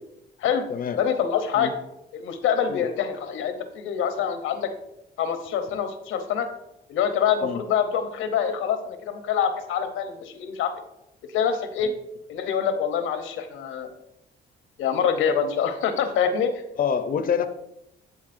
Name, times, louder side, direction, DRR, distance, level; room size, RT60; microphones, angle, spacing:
voice 1, 0.9-1.7 2.1-4.7 5.2-6.5 6.9-10.7 11.3-11.9 12.3-13.9 14.8-16.5, left 7 dB, 90° left, 7 dB, 0.8 m, -25 dB
voice 2, 16.8-17.5, left 7 dB, 45° left, 9 dB, 0.6 m, -26 dB
12.0 x 4.0 x 2.6 m, 0.84 s
cardioid pair, 90°, 20 cm